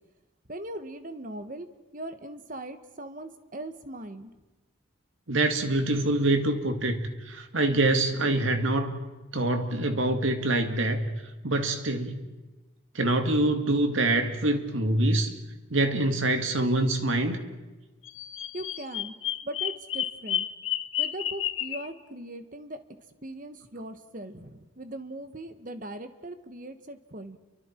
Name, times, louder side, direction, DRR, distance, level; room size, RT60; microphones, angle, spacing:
voice 1, 0.5-4.3 18.5-19.1 19.4-20.5 21.0-22.8 23.2-27.4, right 1 dB, 40° right, 9 dB, 1.4 m, -40 dB
voice 2, 5.3-9.0 9.3-11.1 11.4-12.2 12.9-15.3 15.7-17.4, right 2 dB, 70° right, 6 dB, 2.1 m, -25 dB
Bird vocalization bird call bird song, 18.0-21.9, left 11 dB, 70° left, 1.2 m, -31 dB
30.0 x 24.0 x 4.5 m, 1.2 s
head